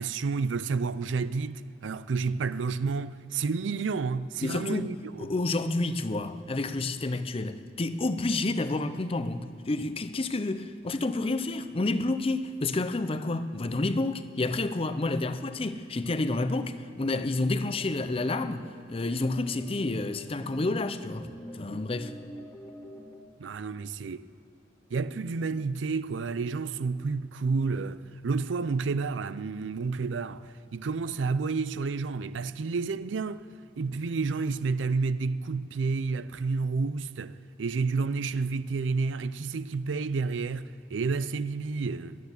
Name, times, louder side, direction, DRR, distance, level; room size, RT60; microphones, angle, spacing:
voice 1, 0.0-5.3 23.4-24.3 24.9-33.5 33.8-42.2, right 4 dB, 90° right, 0.5 m, -30 dB
voice 2, 4.4-21.3 21.5-22.1, left 2 dB, 30° left, 0.6 m, -29 dB
sound 1, 17.7-23.2, equal, 15° left, 1.6 m, -47 dB
11.5 x 9.3 x 9.5 m
head